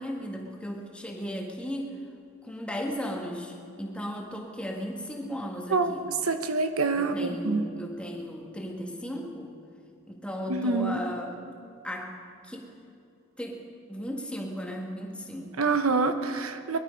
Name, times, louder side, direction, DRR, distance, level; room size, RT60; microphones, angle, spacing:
voice 1, 0.0-2.0 2.4-6.0 6.9-9.5 10.1-11.3 11.8-12.2 12.4-12.7 13.4-13.6 13.9-15.7, equal, 5° left, 0 dB, 1.7 m, -36 dB
voice 2, 6.2-7.6 10.5-11.0 15.6-16.8, right 3 dB, 85° right, 8 dB, 1.0 m, -26 dB
22.5 x 12.0 x 5.3 m, 2.5 s
head